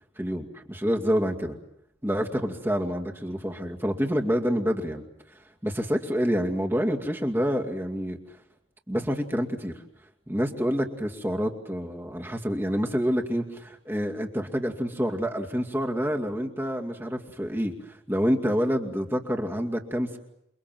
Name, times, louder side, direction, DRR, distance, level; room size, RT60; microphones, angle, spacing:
voice 1, 0.2-1.6 2.0-5.1 5.6-8.2 8.9-9.7 10.3-20.2, equal, 10° right, 2 dB, 2.4 m, -27 dB
29.0 x 23.5 x 7.6 m, 0.80 s
head